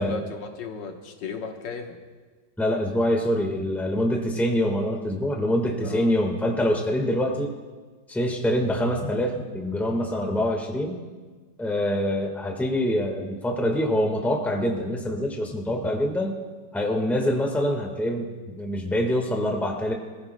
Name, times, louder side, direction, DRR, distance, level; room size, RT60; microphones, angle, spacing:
voice 1, 0.0-2.0 5.8-6.2, left 5 dB, 85° left, 3 dB, 1.8 m, -35 dB
voice 2, 2.6-7.5 8.1-11.0 11.6-16.4 16.7-19.9, equal, ahead, 2 dB, 1.2 m, -25 dB
23.0 x 15.5 x 2.2 m, 1.4 s
omnidirectional pair, 1.9 m